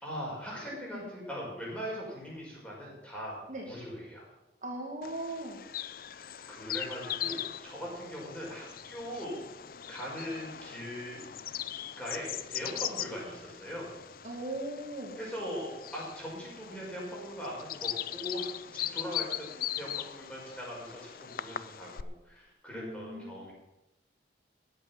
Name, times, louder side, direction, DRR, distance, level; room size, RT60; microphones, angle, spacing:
voice 1, 0.0-3.4 3.6-4.3 6.5-9.4 9.9-11.2 12.0-13.9 15.1-23.5, equal, 5° left, -4 dB, 5.6 m, -40 dB
voice 2, 4.6-5.6 14.2-15.2 22.7-23.5, right 1 dB, 45° right, -1 dB, 2.2 m, -39 dB
Bird vocalization bird call bird song, 5.0-22.0, left 11 dB, 55° left, 0.5 m, -40 dB
14.5 x 8.6 x 7.2 m, 0.97 s
head